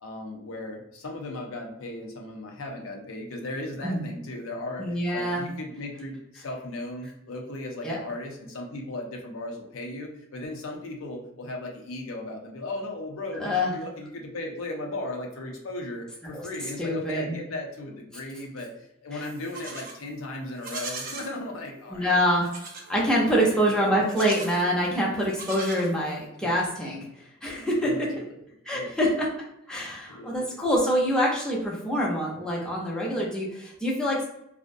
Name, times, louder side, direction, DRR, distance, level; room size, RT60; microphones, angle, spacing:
voice 1, 0.0-22.2 23.3-24.1 27.8-28.3 28.7-28.9 30.1-30.6, left 2 dB, 85° left, 1 dB, 0.6 m, -36 dB
voice 2, 4.8-5.5 7.8-8.0 13.3-13.7 16.3-16.4 16.8-17.3 19.1-19.2 21.9-22.5 22.9-27.0 27.4-28.1 28.7-29.3 29.7-34.2, equal, 5° left, -5 dB, 0.6 m, -25 dB
Livestock farm animals working animals, 19.2-20.0 20.5-21.3 22.4-22.9 24.0-24.7 25.2-26.3, right 4 dB, 45° right, 0.6 m, -39 dB
2.5 x 2.1 x 2.5 m, 0.82 s
head